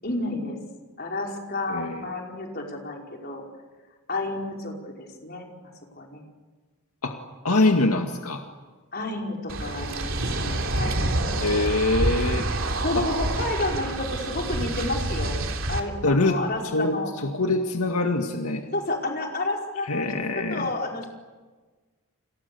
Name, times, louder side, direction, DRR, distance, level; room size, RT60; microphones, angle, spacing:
voice 1, 0.0-0.6 1.0-3.4 4.1-6.2 8.9-12.1 12.8-15.4 15.7-17.1 18.7-21.1, left 2 dB, 45° left, 0 dB, 5.2 m, -31 dB
voice 2, 1.7-2.0 7.0-7.2 7.4-8.4 11.4-12.5 16.0-16.4 16.7-18.7 19.9-20.7, left 2 dB, 80° left, 3 dB, 2.0 m, -24 dB
sound 1, 9.5-15.8, right 2 dB, 60° right, 3.4 m, -27 dB
30.0 x 27.0 x 7.1 m, 1.3 s
head